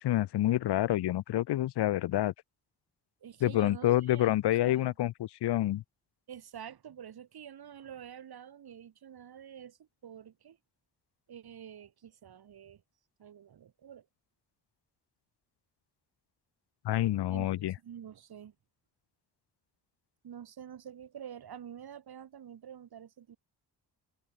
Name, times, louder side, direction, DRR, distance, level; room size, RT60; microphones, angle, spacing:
voice 1, 0.0-2.3 3.4-5.8 16.8-17.7, left 14 dB, 75° left, 1.0 m, -28 dB
voice 2, 3.2-4.4 4.6-4.9 6.3-10.6 11.3-12.8 13.2-14.1 17.3-17.5 17.8-18.5 20.2-23.4, right 9 dB, 65° right, 6.0 m, -47 dB
cardioid pair, 85°, 40 cm